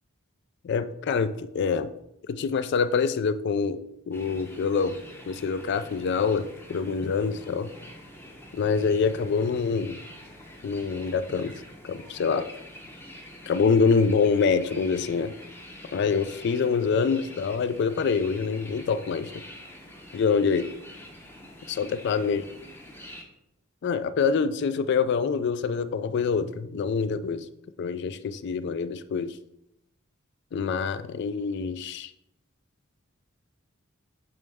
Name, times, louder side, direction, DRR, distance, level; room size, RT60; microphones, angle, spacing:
voice 1, 0.6-1.9 2.3-3.8 4.1-4.9 5.3-7.7 8.5-10.0 10.6-11.5 11.8-12.4 13.5-15.3 15.9-19.4 20.1-20.7 21.7-22.4 23.8-27.5 27.8-29.4 30.5-32.1, left 5 dB, 55° left, 13 dB, 0.3 m, -25 dB
sound 1, 4.1-23.2, left 1 dB, 10° left, 0.7 m, -46 dB
8.4 x 3.2 x 3.5 m, 0.83 s
head